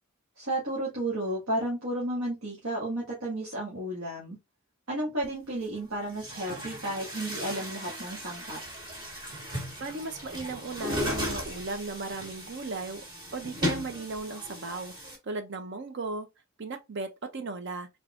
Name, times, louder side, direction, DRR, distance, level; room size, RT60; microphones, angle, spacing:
voice 1, 0.4-4.4 4.9-8.6, right 1 dB, 85° right, 1.7 m, -32 dB
Chatter / Gurgling / Tap, 5.2-5.3 6.0-15.2, equal, 20° right, 1.4 m, -36 dB
voice 2, 9.8-13.0 13.3-14.9 15.2-16.3 16.6-17.9, right 3 dB, 55° right, 0.7 m, -36 dB
3.9 x 3.5 x 2.4 m
head